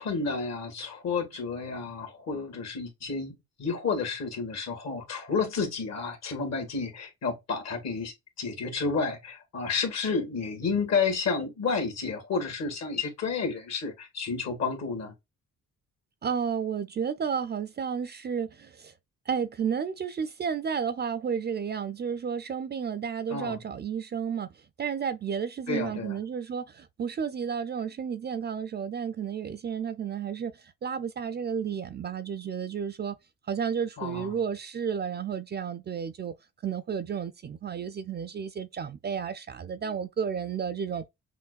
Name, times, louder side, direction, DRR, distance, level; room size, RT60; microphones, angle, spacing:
voice 1, 0.0-3.3 3.6-15.1 23.3-23.6 25.7-26.2 34.0-34.4, left 4 dB, 60° left, 1.7 m, -31 dB
voice 2, 16.2-18.9 19.3-24.5 24.8-30.5 30.8-33.2 33.5-36.3 36.6-41.0, right 7 dB, 35° right, 0.4 m, -32 dB
5.7 x 2.2 x 2.4 m
cardioid pair, 90°, 30 cm